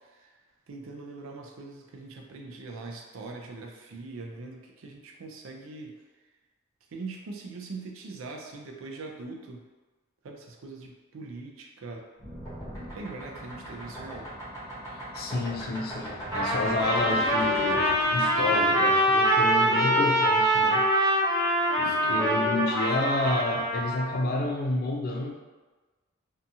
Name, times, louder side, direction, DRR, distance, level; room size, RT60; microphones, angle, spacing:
voice 1, 0.7-5.9 6.9-9.6 10.2-12.0 12.9-14.3 21.9-22.2, right 3 dB, 65° right, 2 dB, 0.4 m, -41 dB
sound 1, 12.2-20.1 21.4-22.6, left 1 dB, 15° left, 0.8 m, -39 dB
voice 2, 14.9-17.8 18.1-20.9 21.8-25.3, left 2 dB, 45° left, 2 dB, 0.3 m, -30 dB
Trumpet, 16.3-24.1, right 1 dB, 15° right, 0.6 m, -24 dB
2.7 x 2.3 x 2.6 m, 1.3 s
head